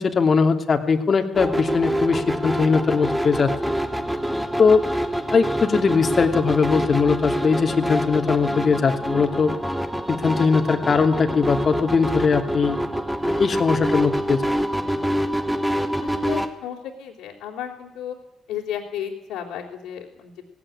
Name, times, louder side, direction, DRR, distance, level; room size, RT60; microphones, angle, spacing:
voice 1, 0.0-3.7 4.6-4.8 5.3-9.5 10.1-12.8 13.2-14.4, left 5 dB, 50° left, 5 dB, 2.8 m, -20 dB
sound 1, 1.3-16.5, equal, 10° right, 3.3 m, -26 dB
voice 2, 16.0-18.2 18.5-20.4, left 9 dB, 80° left, -3 dB, 3.5 m, -33 dB
17.5 x 17.0 x 9.9 m, 0.86 s
hypercardioid pair, 50°, 0 cm